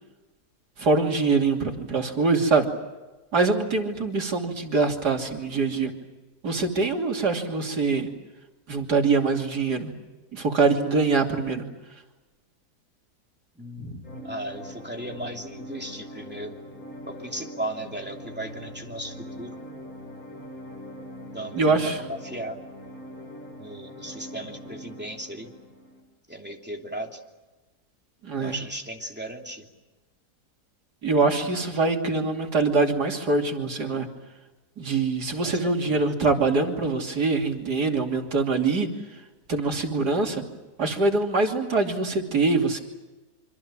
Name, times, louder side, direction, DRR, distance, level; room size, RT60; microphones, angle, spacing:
voice 1, 0.8-2.7 3.3-5.9 6.4-8.1 8.7-9.9 10.3-11.6 13.8-14.0 21.5-22.0 28.2-28.6 31.0-34.1 34.8-38.9 39.5-40.4 40.8-42.8, right 3 dB, 75° right, 2 dB, 3.4 m, -24 dB
voice 2, 13.5-16.6 17.0-19.6 21.3-22.6 23.6-25.5 26.3-27.2 28.4-29.7 35.4-36.0, right 1 dB, 5° right, 1 dB, 2.9 m, -36 dB
sound 1, 14.0-26.0, left 1 dB, 60° left, 5.1 m, -42 dB
26.0 x 26.0 x 7.5 m, 1.1 s
omnidirectional pair, 1.7 m